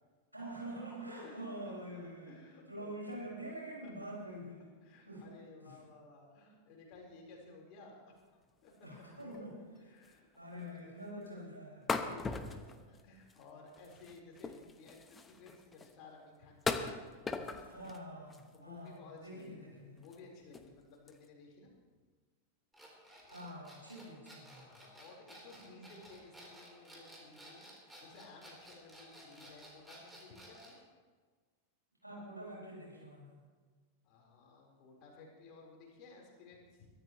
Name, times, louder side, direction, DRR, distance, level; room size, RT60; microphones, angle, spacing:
voice 1, 0.3-2.4 2.7-4.6 5.1-5.3 5.6-5.7 8.8-9.9 10.4-11.8 17.4-20.0 23.3-24.6 32.0-33.4, right 1 dB, 85° right, -4 dB, 5.3 m, -46 dB
voice 2, 0.9-3.0 3.8-4.1 4.8-8.9 9.8-11.4 11.9-17.7 18.5-21.7 24.6-30.8 34.0-36.9, left 3 dB, 40° left, -1 dB, 4.1 m, -56 dB
sound 1, 9.2-9.4 9.7-9.8 10.0-10.4 10.6-10.7 11.9-13.4 13.7-15.9 16.6-18.0 18.3-18.9 19.4-19.5 20.0-20.2 20.5-20.7 21.1-21.3, left 4 dB, 15° left, 1.0 m, -40 dB
sound 2, 22.7-30.8, equal, 5° right, 3.8 m, -55 dB
22.5 x 12.5 x 3.1 m, 1.4 s
figure-of-eight pair, 90°, 0 cm